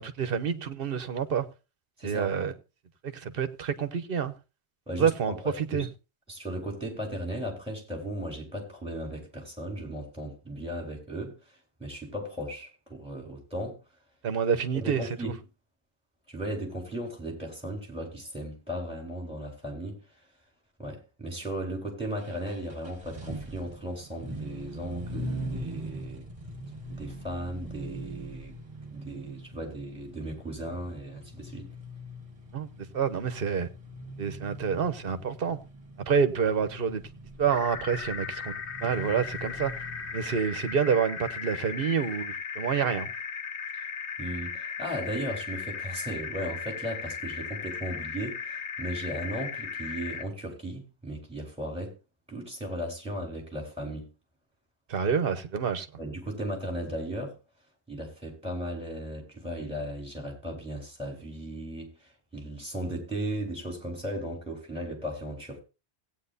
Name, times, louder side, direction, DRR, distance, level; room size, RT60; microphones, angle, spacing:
voice 1, 0.0-1.5 2.0-2.5 3.0-4.3 5.0-5.9 14.2-15.3 32.5-32.7 32.9-33.7 34.2-35.6 36.1-37.0 37.4-39.8 40.1-43.1 54.9-55.9, right 6 dB, 60° right, 1.1 m, -28 dB
voice 2, 2.0-2.3 4.9-5.9 6.3-11.3 11.8-13.8 14.7-15.4 16.3-20.0 20.8-26.3 26.9-28.5 28.9-31.7 43.7-43.8 44.2-52.0 52.3-54.1 56.0-57.3 57.9-65.6, right 1 dB, 5° right, 4.0 m, -36 dB
sound 1, 22.2-40.5, equal, 30° right, 1.7 m, -42 dB
sound 2, 37.5-50.2, left 6 dB, 85° left, 1.3 m, -37 dB
17.5 x 9.0 x 2.7 m
omnidirectional pair, 1.1 m